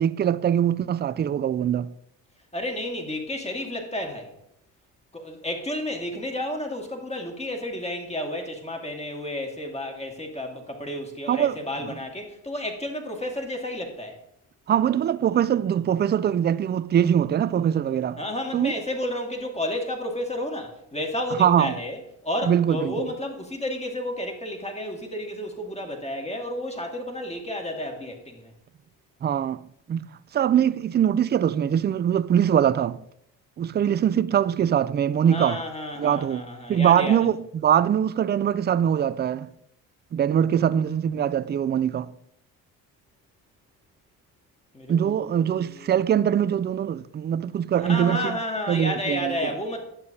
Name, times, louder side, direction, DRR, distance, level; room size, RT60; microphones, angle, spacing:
voice 1, 0.0-1.9 11.3-11.6 14.7-18.2 18.5-18.7 21.4-21.7 22.4-23.1 29.2-29.6 29.9-30.0 30.3-33.0 33.6-35.6 36.0-36.4 36.7-37.4 37.6-39.5 40.1-42.1 44.9-48.4 48.7-49.4, right 9 dB, 25° right, 0.3 m, -22 dB
voice 2, 2.5-4.3 5.1-14.2 18.2-28.5 35.3-37.3 44.7-45.3 45.5-45.9 47.8-49.8, left 1 dB, 15° left, 2.0 m, -31 dB
11.5 x 6.9 x 2.8 m
supercardioid pair, 65°, 42 cm